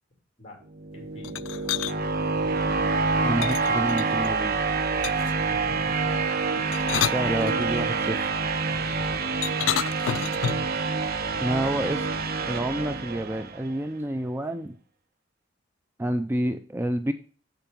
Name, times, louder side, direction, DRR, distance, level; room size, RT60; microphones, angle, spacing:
sound 1, 0.7-13.7, right 4 dB, 55° right, 0.8 m, -27 dB
voice 1, 0.9-2.0 5.3-6.1 8.7-9.3, left 1 dB, 35° left, 2 dB, 3.5 m, -46 dB
sound 2, 1.2-1.9 3.4-4.3 5.0-5.4 6.6-7.9 9.4-10.7, left 11 dB, 80° left, 0.3 m, -30 dB
voice 2, 3.2-4.6 7.0-8.3 11.4-12.1 12.5-14.8 16.0-17.1, right 1 dB, 10° right, 9 dB, 0.4 m, -28 dB
7.9 x 7.1 x 3.9 m, 0.40 s
head